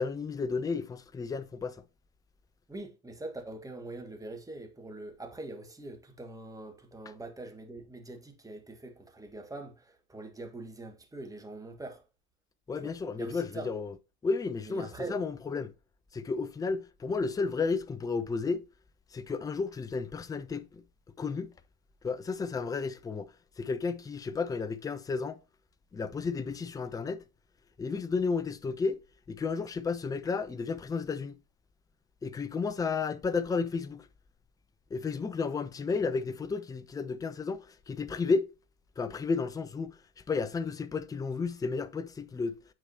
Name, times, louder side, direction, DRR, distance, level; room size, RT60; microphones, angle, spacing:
voice 1, 0.0-1.8 12.7-13.9 14.2-15.7 16.1-18.6 19.1-20.8 21.2-21.5 22.0-25.4 25.9-27.2 27.8-29.0 29.3-31.4 32.2-34.1 34.9-38.5 39.0-42.5, left 4 dB, 10° left, 0.5 m, -32 dB
voice 2, 2.7-12.0 12.7-13.7 14.6-15.2, right 2 dB, 10° right, 1.6 m, -43 dB
9.0 x 4.8 x 2.9 m
figure-of-eight pair, 70°, 34 cm